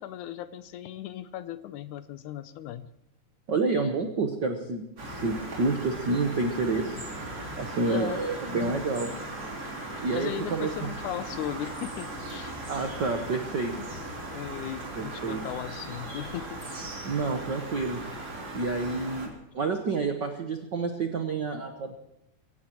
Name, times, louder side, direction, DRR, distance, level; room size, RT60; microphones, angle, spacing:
voice 1, 0.0-2.9 7.9-8.2 10.0-12.6 13.8-17.0, left 11 dB, 80° left, 12 dB, 2.0 m, -37 dB
voice 2, 3.5-4.8 5.1-7.0 7.6-9.1 10.0-10.9 12.7-13.7 15.0-15.4 17.0-18.0 18.5-21.9, right 3 dB, 65° right, 4 dB, 1.0 m, -29 dB
sound 1, 5.0-19.3, right 2 dB, 30° right, 3.2 m, -38 dB
23.5 x 16.5 x 3.1 m, 0.85 s
omnidirectional pair, 3.7 m